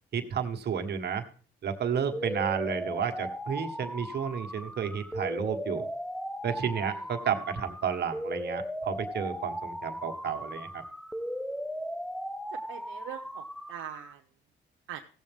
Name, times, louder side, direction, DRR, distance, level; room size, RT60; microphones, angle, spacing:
voice 1, 0.1-1.2 1.6-5.8 6.4-10.8, right 7 dB, 55° right, 5 dB, 1.5 m, -31 dB
sound 1, 2.1-14.1, equal, ahead, 0.5 m, -37 dB
voice 2, 12.5-14.2 14.9-15.0, right 12 dB, 85° right, 3 dB, 0.8 m, -43 dB
16.5 x 7.2 x 3.6 m, 0.42 s
cardioid pair, 90°, 20 cm